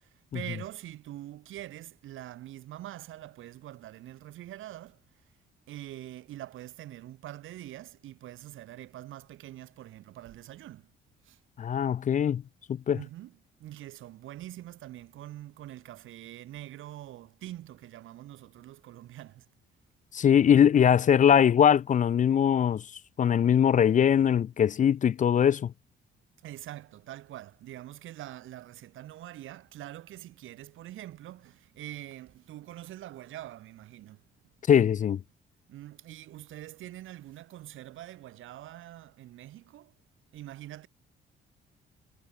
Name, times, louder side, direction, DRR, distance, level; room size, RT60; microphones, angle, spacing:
voice 1, 0.3-5.0 5.7-10.9 11.3-11.4 12.9-19.4 26.4-34.2 34.7-34.8 35.7-39.9 40.3-40.9, right 14 dB, 85° right, 7.2 m, -44 dB
voice 2, 11.6-12.4 12.9-13.0 20.1-22.8 23.2-25.7 34.7-35.2, left 8 dB, 40° left, 0.4 m, -21 dB
cardioid pair, 90°, 20 cm